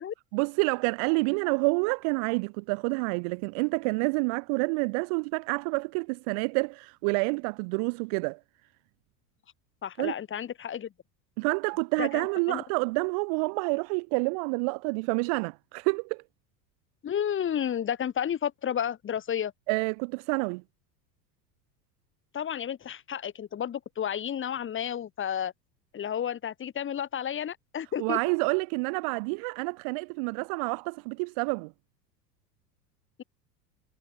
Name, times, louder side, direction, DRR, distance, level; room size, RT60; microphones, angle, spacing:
voice 1, 0.3-8.4 10.0-10.1 11.4-16.2 19.7-20.6 28.0-31.7, right 34 dB, 25° right, 0.3 m, -28 dB
voice 2, 9.8-10.9 12.0-12.6 17.0-19.5 22.3-25.5 25.9-28.2, left 9 dB, 25° left, 2.0 m, -31 dB
figure-of-eight pair, 80°, 50 cm